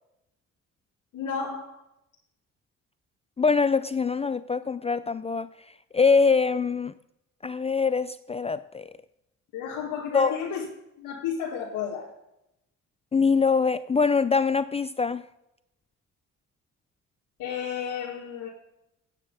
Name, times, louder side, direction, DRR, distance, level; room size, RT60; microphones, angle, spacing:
voice 1, 1.1-1.8 9.5-10.7 11.0-12.1 17.4-18.5, left 7 dB, 90° left, -5 dB, 2.1 m, -32 dB
voice 2, 3.4-5.5 5.9-6.9 7.4-8.9 10.1-10.4 13.1-15.2, left 5 dB, 20° left, 14 dB, 0.3 m, -23 dB
9.7 x 9.3 x 5.5 m, 0.84 s
cardioid pair, 90°, 30 cm